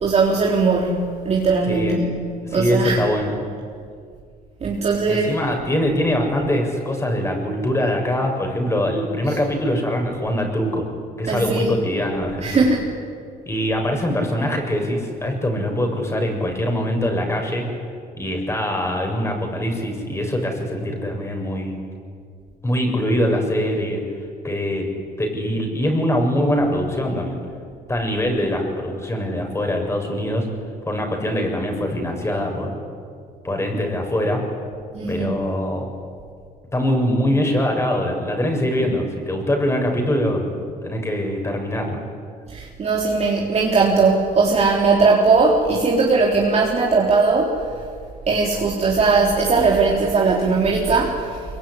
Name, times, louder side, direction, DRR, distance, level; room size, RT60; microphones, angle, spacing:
voice 1, 0.0-3.0 4.6-5.3 9.3-9.4 11.3-11.7 12.4-12.8 34.9-35.4 42.5-47.6 48.3-51.4, right 4 dB, 40° right, -2 dB, 3.8 m, -19 dB
voice 2, 1.6-2.0 2.5-3.3 5.1-10.9 11.2-12.7 13.5-17.7 18.2-21.8 22.6-24.0 24.4-24.9 25.2-27.4 27.9-30.5 30.9-32.7 33.4-34.4 35.1-35.9 36.7-40.5 40.8-42.0, equal, 15° left, 3 dB, 6.9 m, -23 dB
25.0 x 23.0 x 9.9 m, 2.2 s
cardioid pair, 110°, 17 cm